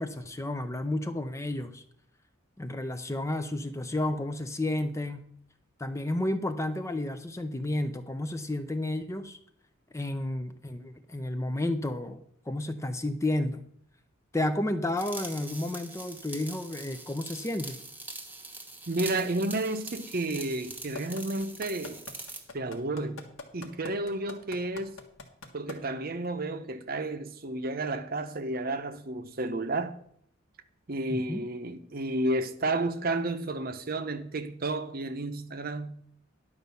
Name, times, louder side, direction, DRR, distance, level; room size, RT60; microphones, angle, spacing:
voice 1, 0.0-1.8 2.6-5.3 5.8-9.4 9.9-13.6 14.3-17.8 31.1-31.4, left 1 dB, 15° left, 0.6 m, -31 dB
sound 1, 15.0-22.5, right 3 dB, 10° right, 1.1 m, -43 dB
voice 2, 18.9-22.0 22.5-23.2 23.5-25.0 25.5-30.0 30.9-36.0, right 2 dB, 45° right, 0.8 m, -31 dB
sound 2, 20.9-25.7 26.2-26.3, left 4 dB, 90° left, 1.6 m, -42 dB
11.0 x 5.3 x 6.9 m
head